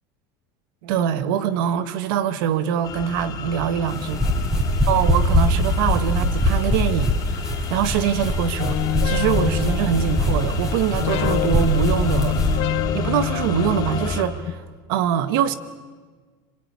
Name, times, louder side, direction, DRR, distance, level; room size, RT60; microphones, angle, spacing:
voice 1, 0.8-4.2 4.9-12.4 12.9-14.6 14.9-15.5, right 9 dB, 75° right, 1.8 m, -23 dB
sound 1, 2.8-14.2, left 5 dB, 30° left, 4.3 m, -31 dB
sound 2, 3.9-12.6, equal, 5° right, 5.7 m, -23 dB
sound 3, 8.6-10.6 11.0-14.5, left 16 dB, 50° left, 1.0 m, -27 dB
26.5 x 22.5 x 9.7 m
supercardioid pair, 155°, 12 cm